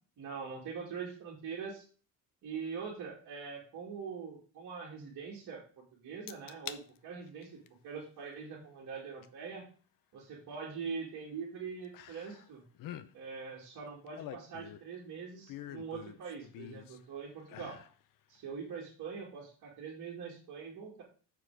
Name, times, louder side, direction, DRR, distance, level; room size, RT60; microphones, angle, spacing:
voice 1, 0.2-1.8 2.4-9.7 10.1-12.6 13.1-17.8 18.3-21.0, right 5 dB, 50° right, -5 dB, 2.4 m, -43 dB
sound 1, 6.3-6.8 7.3-7.7 9.2-9.3 11.9-12.5 12.7-13.1 13.9-14.9 15.5-17.0 17.4-17.9 18.4-18.5, left 12 dB, 55° left, 0.6 m, -46 dB
7.3 x 6.0 x 4.8 m, 0.39 s
cardioid pair, 170°, 40 cm